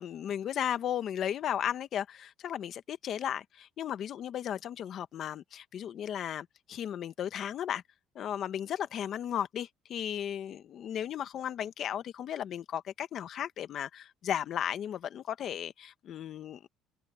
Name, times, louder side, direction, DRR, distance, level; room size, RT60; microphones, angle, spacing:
voice 1, 0.0-7.8 8.1-16.7, left 10 dB, 45° left, 1.2 m, -35 dB
cardioid pair, 160°, 0 cm